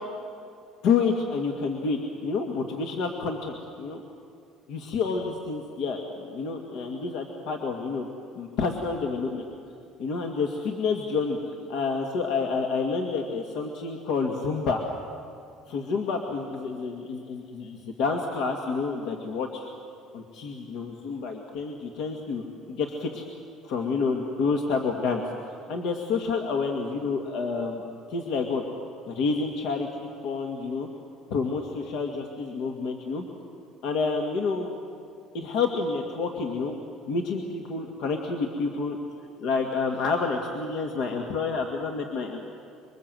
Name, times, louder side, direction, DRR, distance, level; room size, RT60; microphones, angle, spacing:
voice 1, 0.8-4.0 4.7-8.1 8.3-9.4 10.0-14.8 15.7-19.7 20.1-23.2 23.6-25.2 25.7-27.8 28.1-28.6 29.1-30.9 31.3-33.2 33.8-34.7 35.3-36.8 37.1-39.0 39.4-42.4, left 4 dB, 65° left, 2 dB, 2.1 m, -29 dB
26.5 x 24.0 x 7.8 m, 2.4 s
cardioid pair, 155°, 0 cm